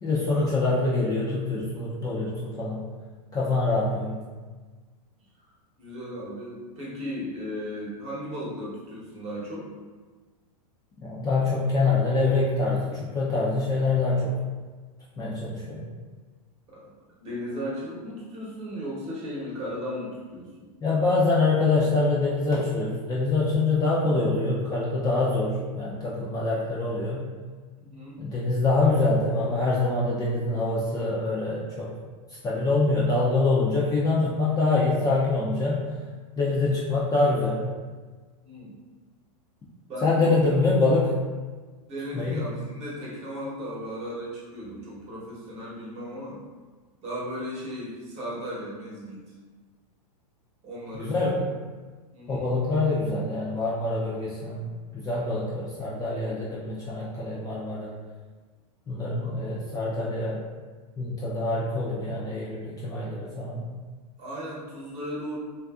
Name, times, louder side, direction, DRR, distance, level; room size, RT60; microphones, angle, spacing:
voice 1, 0.0-2.8 3.3-4.2 11.0-14.3 15.2-15.8 20.8-27.3 28.2-31.9 32.4-35.8 36.4-37.6 40.0-41.1 42.1-42.5 50.9-51.4 52.3-54.7 54.9-57.9 58.9-60.4 61.0-63.7, left 3 dB, 20° left, -7 dB, 0.4 m, -25 dB
voice 2, 5.8-9.7 16.7-16.9 17.2-20.7 27.8-28.2 38.4-38.8 39.9-40.4 41.9-46.4 47.0-49.2 50.6-51.4 52.1-52.5 59.2-59.4 64.2-65.4, equal, 30° right, -6 dB, 1.0 m, -36 dB
2.5 x 2.5 x 2.3 m, 1.4 s
hypercardioid pair, 115°, 20 cm